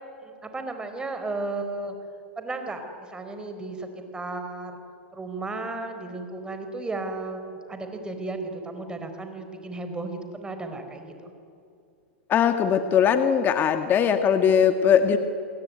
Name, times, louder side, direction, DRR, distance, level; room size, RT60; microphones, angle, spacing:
voice 1, 0.2-1.9 2.4-4.8 5.1-11.3, right 2 dB, 15° right, 6 dB, 4.5 m, -34 dB
voice 2, 12.3-15.2, left 8 dB, 30° left, 8 dB, 1.8 m, -20 dB
29.5 x 21.0 x 9.6 m, 2.6 s
hypercardioid pair, 120°, 6 cm